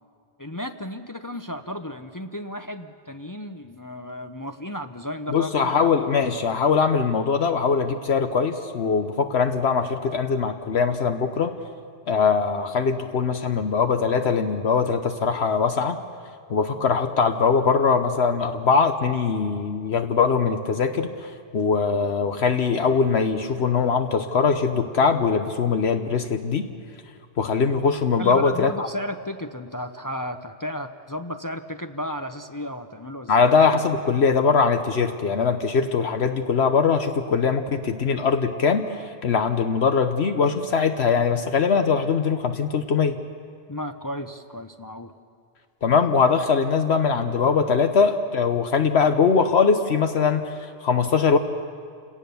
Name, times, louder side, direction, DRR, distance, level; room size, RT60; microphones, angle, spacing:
voice 1, 0.4-5.7 28.2-33.4 43.7-45.1, left 1 dB, 20° left, 7 dB, 0.6 m, -33 dB
voice 2, 5.3-11.5 12.1-16.0 16.5-26.7 27.4-28.9 33.3-43.2 45.8-51.4, left 5 dB, 65° left, 7 dB, 1.1 m, -21 dB
29.0 x 18.0 x 6.9 m, 2.3 s
omnidirectional pair, 1.2 m